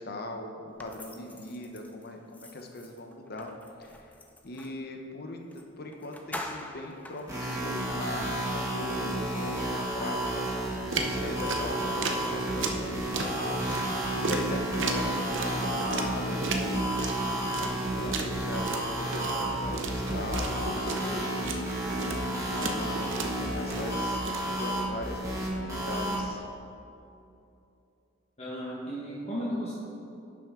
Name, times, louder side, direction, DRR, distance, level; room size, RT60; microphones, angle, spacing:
voice 1, 0.0-3.5 3.8-4.1 4.4-13.3 14.2-16.9 17.6-21.4 22.4-26.4, left 1 dB, 55° left, 3 dB, 0.8 m, -40 dB
sound 1, 0.8-4.8 5.5-5.6 5.9-8.0, left 1 dB, 10° left, 0.5 m, -44 dB
sound 2, 7.3-26.2, right 1 dB, 15° right, 1.7 m, -31 dB
sound 3, 10.8-24.7, right 3 dB, 75° right, 0.7 m, -36 dB
voice 2, 28.4-29.7, equal, 35° left, -8 dB, 1.3 m, -34 dB
10.5 x 6.1 x 3.7 m, 2.7 s
head